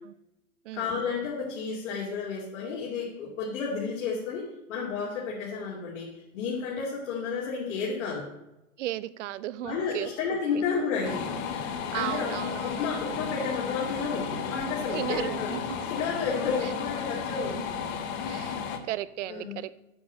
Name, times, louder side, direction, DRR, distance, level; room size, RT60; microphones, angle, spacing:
voice 1, 0.7-4.4 4.7-8.3 9.6-11.3 11.9-15.6 15.8-17.6 19.3-19.6, left 5 dB, 55° left, -4 dB, 2.6 m, -32 dB
voice 2, 8.8-10.6 11.9-12.8 14.9-15.9 17.4-17.7 18.3-19.8, right 14 dB, 55° right, 17 dB, 0.7 m, -35 dB
Bowed string instrument, 9.7-18.2, left 1 dB, ahead, 0.8 m, -51 dB
sound 1, 11.0-18.8, left 7 dB, 25° left, 0.9 m, -33 dB
8.7 x 7.1 x 6.3 m, 0.93 s
hypercardioid pair, 155°, 43 cm